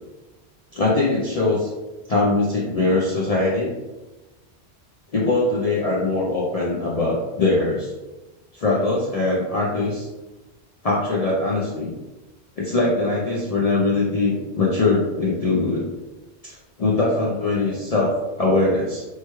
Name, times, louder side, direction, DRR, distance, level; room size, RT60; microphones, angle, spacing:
voice 1, 0.7-1.7 2.1-3.7 5.1-7.9 8.5-10.1 10.8-11.9 12.6-15.8 16.4-19.0, left 2 dB, 50° left, -5 dB, 0.4 m, -22 dB
3.0 x 2.2 x 3.0 m, 1.1 s
omnidirectional pair, 1.2 m